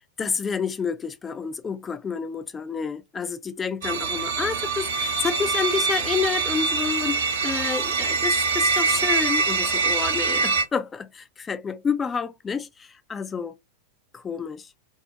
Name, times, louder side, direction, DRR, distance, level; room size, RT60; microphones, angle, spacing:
voice 1, 0.2-13.5 14.1-14.7, left 6 dB, 20° left, 0.3 m, -29 dB
sound 1, 3.8-10.6, right 4 dB, 60° right, 0.5 m, -24 dB
2.3 x 2.0 x 2.6 m
figure-of-eight pair, 90°, 0 cm